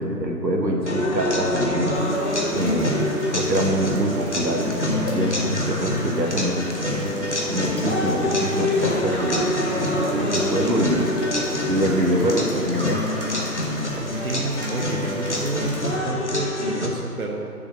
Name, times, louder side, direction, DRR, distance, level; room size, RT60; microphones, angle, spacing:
voice 1, 0.0-1.9 2.5-6.7 7.5-11.1 11.7-13.0, right 1 dB, 90° right, 1 dB, 1.6 m, -25 dB
sound 1, 0.9-16.9, left 1 dB, 45° left, 1.0 m, -26 dB
Rain, 1.9-15.9, right 1 dB, 35° right, 1.3 m, -38 dB
sound 2, 4.6-15.2, left 1 dB, 70° left, 1.6 m, -37 dB
voice 2, 14.2-17.5, right 2 dB, 60° right, 2 dB, 0.7 m, -29 dB
6.7 x 5.3 x 7.2 m, 2.8 s
figure-of-eight pair, 160°, 50 cm